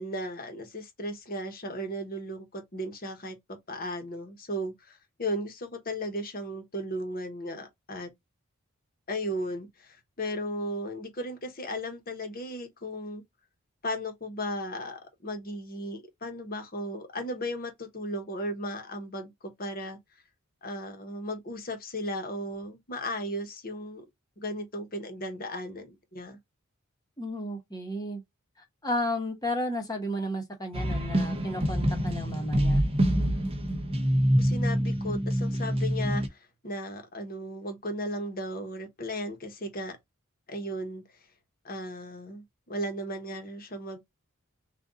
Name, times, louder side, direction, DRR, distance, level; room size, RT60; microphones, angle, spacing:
voice 1, 0.0-8.1 9.1-13.2 13.8-20.0 20.6-24.0 24.4-26.4 34.4-40.0 40.5-41.0 41.6-44.0, equal, 40° left, 1.1 m, -36 dB
voice 2, 27.2-28.2 28.8-32.8, left 1 dB, 15° left, 1.1 m, -33 dB
sound 1, 30.7-36.3, equal, 25° right, 0.7 m, -26 dB
3.8 x 2.5 x 3.6 m
head